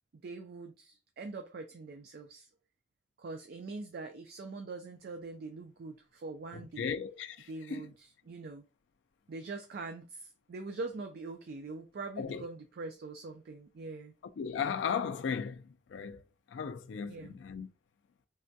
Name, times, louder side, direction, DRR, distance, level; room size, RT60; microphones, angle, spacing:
voice 1, 0.2-2.5 3.2-6.9 7.5-8.7 9.3-14.1 17.1-17.4, right 3 dB, 55° right, 0.4 m, -43 dB
voice 2, 6.5-7.8 12.2-12.4 14.4-16.2 16.5-17.7, left 6 dB, 65° left, 0.3 m, -36 dB
3.3 x 2.2 x 2.6 m
head